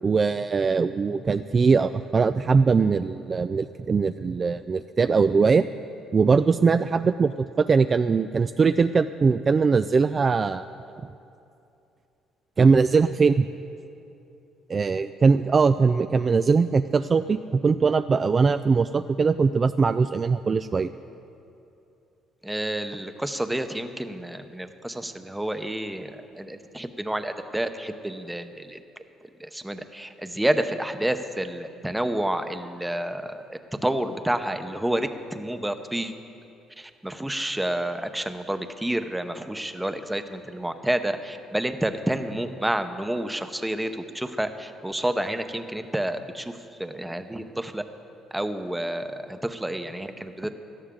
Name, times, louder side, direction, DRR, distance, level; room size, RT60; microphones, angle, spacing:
voice 1, 0.0-5.7 6.1-10.7 11.0-11.1 12.6-13.5 14.7-20.9, right 5 dB, 35° right, 11 dB, 0.3 m, -21 dB
voice 2, 22.4-28.8 29.4-36.1 36.8-47.8 48.3-50.5, right 1 dB, 5° right, 8 dB, 0.8 m, -29 dB
18.0 x 13.0 x 3.8 m, 2.7 s
cardioid pair, 95°, 0 cm